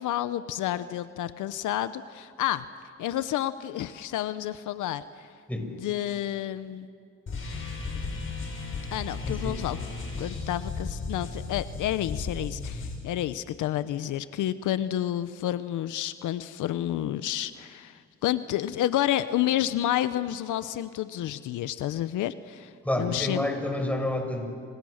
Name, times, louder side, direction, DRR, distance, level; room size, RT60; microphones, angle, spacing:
voice 1, 0.0-2.6 3.0-5.3 5.8-6.9 8.9-9.8 10.2-22.7 23.0-23.4, left 12 dB, 80° left, 13 dB, 0.9 m, -30 dB
sound 1, 7.3-13.0, left 4 dB, 45° left, 7.5 m, -35 dB
voice 2, 9.2-9.6 22.8-24.5, left 1 dB, 5° left, 3 dB, 5.8 m, -29 dB
30.0 x 26.5 x 6.5 m, 2.2 s
cardioid pair, 90°, 30 cm